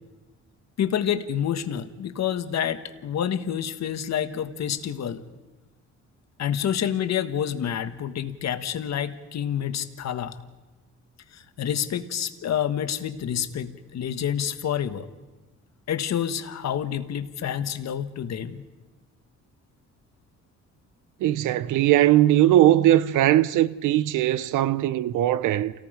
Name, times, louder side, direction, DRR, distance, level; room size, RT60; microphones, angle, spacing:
voice 1, 0.8-5.2 6.4-10.4 11.3-15.1 15.9-18.6, left 9 dB, 60° left, 1.5 m, -28 dB
voice 2, 21.2-25.7, right 13 dB, 85° right, 0.9 m, -20 dB
28.5 x 18.5 x 5.1 m
cardioid pair, 90°, 30 cm